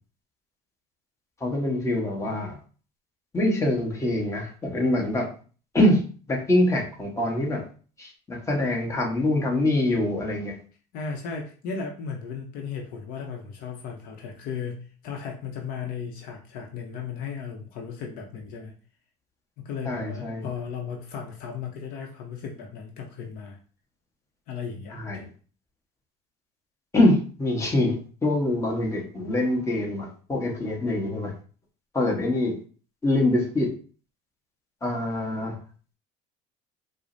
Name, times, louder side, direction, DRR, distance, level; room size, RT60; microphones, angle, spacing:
voice 1, 1.4-2.6 3.3-5.3 5.7-6.0 6.3-7.6 8.0-10.6 19.8-20.5 24.9-25.3 26.9-31.3 31.9-32.6 33.0-33.7 34.8-35.6, left 1 dB, 20° left, -1 dB, 1.1 m, -24 dB
voice 2, 10.9-18.7 19.6-23.6 24.5-25.2, left 6 dB, 65° left, 1 dB, 0.7 m, -36 dB
4.7 x 2.0 x 2.6 m, 0.39 s
supercardioid pair, 105°, 16 cm